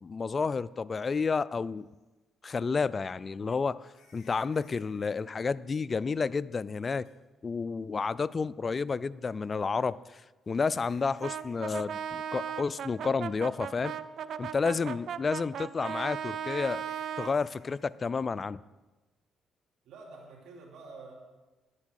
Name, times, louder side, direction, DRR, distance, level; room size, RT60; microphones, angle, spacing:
voice 1, 0.0-1.9 2.4-7.1 7.4-10.0 10.5-13.9 14.4-16.8 17.2-18.6, left 5 dB, 35° left, 18 dB, 0.3 m, -30 dB
sound 1, 1.9-2.0 3.8-5.2 7.0-7.1 9.7-11.9 12.1-12.5 12.9-13.0 13.6-13.7 16.5-17.9, left 5 dB, 70° left, 2.9 m, -63 dB
Brass instrument, 11.2-17.4, right 8 dB, 65° right, 0.5 m, -37 dB
voice 2, 19.8-21.1, right 3 dB, 80° right, 0 dB, 3.1 m, -48 dB
10.5 x 9.7 x 6.4 m, 1.2 s
cardioid pair, 90°, 0 cm